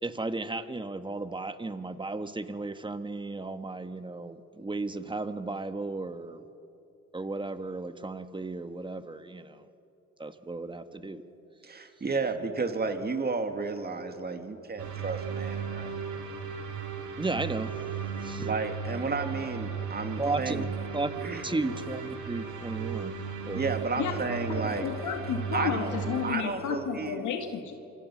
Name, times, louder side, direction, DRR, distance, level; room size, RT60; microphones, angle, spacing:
voice 1, 0.0-6.4 7.1-9.6 10.2-11.2 17.2-17.7 18.2-18.5 20.2-20.7 20.9-21.1 21.4-23.2 23.5-23.6, right 3 dB, 15° right, 10 dB, 1.4 m, -34 dB
voice 2, 11.6-16.0 18.2-20.7 21.2-21.5 23.5-24.9 25.5-27.2, right 4 dB, 30° right, 6 dB, 2.4 m, -32 dB
sound 1, 14.8-26.3, right 6 dB, 75° right, 3.5 m, -36 dB
voice 3, 24.5-27.7, left 7 dB, 75° left, 4 dB, 2.1 m, -32 dB
27.5 x 26.0 x 6.2 m, 2.8 s
cardioid pair, 90°, 30 cm